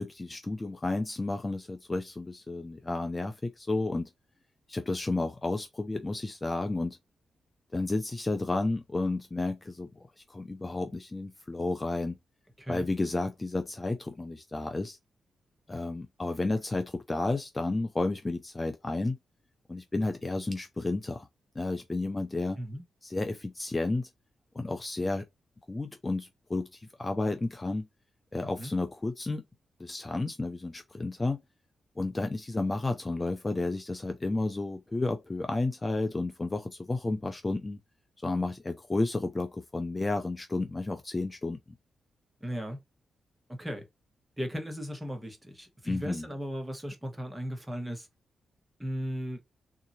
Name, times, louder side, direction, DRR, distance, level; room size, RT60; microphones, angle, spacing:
voice 1, 0.0-4.1 4.7-7.0 7.7-9.9 10.3-12.2 12.7-15.0 15.7-19.2 19.7-21.3 21.5-22.6 23.0-24.1 24.5-25.3 25.7-27.9 28.3-29.4 29.8-31.4 32.0-37.8 38.2-41.6 45.8-46.3, left 2 dB, 25° left, 0.6 m, -32 dB
voice 2, 12.6-12.9 22.6-22.8 28.4-28.7 42.4-42.8 43.5-43.9 44.4-48.1 48.8-49.4, equal, 10° right, 1.3 m, -36 dB
3.7 x 2.8 x 2.7 m
cardioid pair, 75°, 0 cm